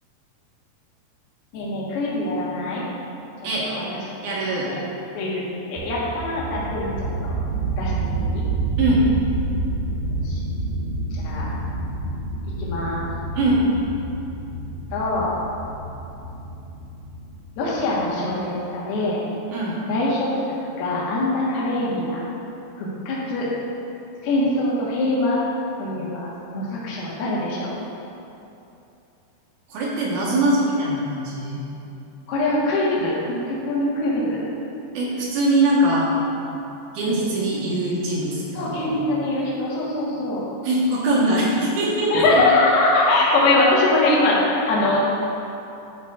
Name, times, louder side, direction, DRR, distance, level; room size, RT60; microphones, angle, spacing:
voice 1, 1.5-2.8 3.6-3.8 4.7-4.8 5.1-5.4 5.7-6.9 7.2-7.3 7.8-8.4 10.2-10.4 11.2-11.4 12.6-13.1 14.9-15.3 17.6-19.2 19.9-20.4 20.8-22.2 22.8-23.5 24.2-25.4 25.8-27.7 32.3-34.4 37.1-37.2 38.5-40.4 42.1-45.0, left 2 dB, 80° left, -6 dB, 3.2 m, -23 dB
voice 2, 4.2-4.7 8.8-9.0 13.4-13.6 19.5-19.8 29.7-31.6 34.9-36.1 36.9-38.9 40.6-42.4, right 1 dB, 65° right, -6 dB, 2.0 m, -22 dB
sound 1, 5.8-18.1, right 2 dB, 85° right, 1.8 m, -28 dB
11.0 x 6.2 x 2.3 m, 2.8 s
omnidirectional pair, 4.6 m